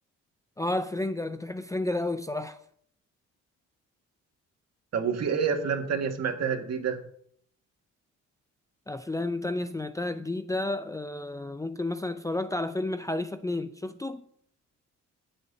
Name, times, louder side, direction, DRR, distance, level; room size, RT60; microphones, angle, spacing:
voice 1, 0.6-2.6 8.9-14.2, left 2 dB, 10° left, 0.5 m, -31 dB
voice 2, 4.9-7.0, right 6 dB, 60° right, 1.9 m, -28 dB
19.5 x 7.7 x 2.8 m
cardioid pair, 90°, 30 cm